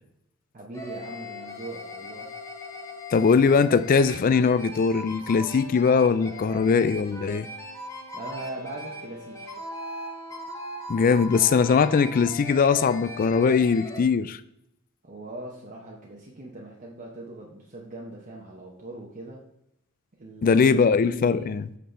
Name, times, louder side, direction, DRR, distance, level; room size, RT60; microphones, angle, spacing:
voice 1, 0.5-2.3 8.1-9.5 15.0-19.4 20.2-21.6, right 2 dB, 40° right, 0.9 m, -40 dB
sound 1, 0.7-14.0, left 1 dB, 15° left, 1.0 m, -39 dB
voice 2, 3.1-7.5 10.9-14.4 20.4-21.6, left 5 dB, 40° left, 0.3 m, -21 dB
7.8 x 5.5 x 3.3 m
head